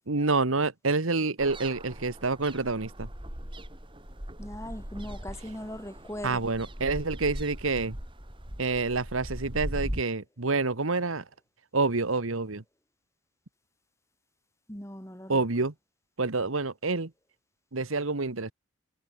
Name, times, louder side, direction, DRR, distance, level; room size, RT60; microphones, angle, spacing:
voice 1, 0.1-3.1 6.2-8.0 8.6-11.2 11.7-12.6 15.3-15.7 16.2-17.1 17.7-18.5, right 3 dB, 90° right, 1.5 m, -28 dB
sound 1, 1.4-10.0, equal, 25° right, 3.3 m, -39 dB
voice 2, 4.4-6.4 14.7-15.4, left 1 dB, 15° left, 4.4 m, -39 dB
head